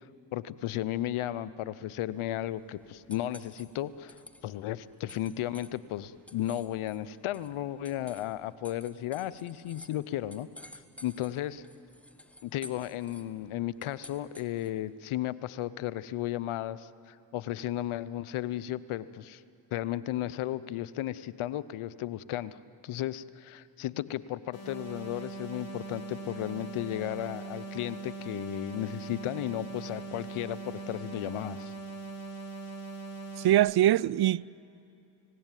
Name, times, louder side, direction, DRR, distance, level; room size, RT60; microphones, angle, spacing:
voice 1, 0.3-4.1 4.4-10.7 11.0-11.6 12.4-19.4 19.7-22.6 22.8-31.7, left 13 dB, 85° left, 0.8 m, -34 dB
sound 1, 2.0-14.9, left 1 dB, 5° left, 1.6 m, -53 dB
sound 2, 24.5-33.5, right 4 dB, 45° left, 5.6 m, -41 dB
voice 2, 33.4-34.6, right 13 dB, 55° right, 0.5 m, -23 dB
30.0 x 17.5 x 9.1 m
supercardioid pair, 50°, 48 cm